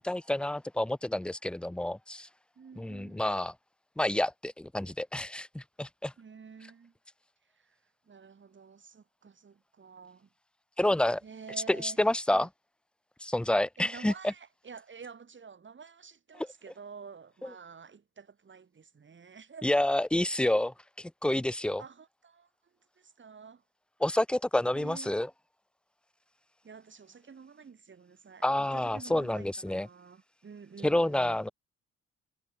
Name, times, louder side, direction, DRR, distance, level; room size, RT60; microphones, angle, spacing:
voice 1, 0.0-2.3 2.8-3.5 4.0-6.1 10.8-11.2 11.7-12.5 13.2-14.3 16.4-16.5 17.4-17.5 19.6-21.8 24.0-25.3 28.4-29.9 30.8-31.5, left 1 dB, 5° left, 0.5 m, -29 dB
voice 2, 2.6-3.3 6.2-6.9 7.5-7.8 8.0-10.3 11.2-12.0 12.3-12.5 13.8-19.8 21.8-23.6 24.7-25.1 26.6-31.4, right 6 dB, 40° right, 6.2 m, -49 dB
cardioid pair, 90°, 30 cm